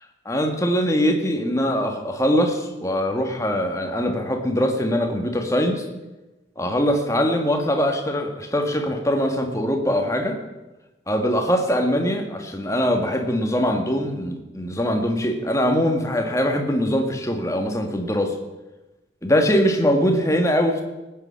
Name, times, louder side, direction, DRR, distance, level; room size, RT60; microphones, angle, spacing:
voice 1, 0.2-5.8 6.6-10.4 11.1-18.4 19.2-20.8, equal, 15° left, 4 dB, 1.7 m, -22 dB
19.0 x 9.2 x 5.7 m, 1.1 s
head